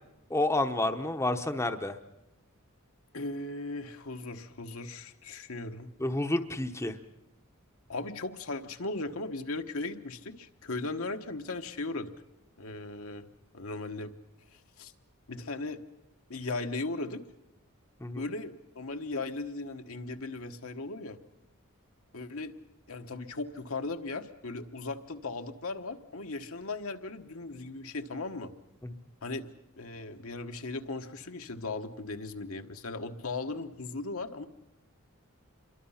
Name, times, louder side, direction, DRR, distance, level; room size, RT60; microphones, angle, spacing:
voice 1, 0.3-2.0 6.0-7.0 18.0-18.2 28.8-28.9, left 2 dB, 15° left, 6 dB, 0.8 m, -29 dB
voice 2, 3.1-5.9 7.9-12.1 12.6-13.3 13.5-14.1 14.5-14.9 15.3-15.8 16.3-17.2 18.2-21.2 22.1-22.5 22.9-28.5 29.2-29.5 29.8-34.5, left 3 dB, 75° left, 6 dB, 1.3 m, -37 dB
27.5 x 23.0 x 5.7 m, 0.88 s
head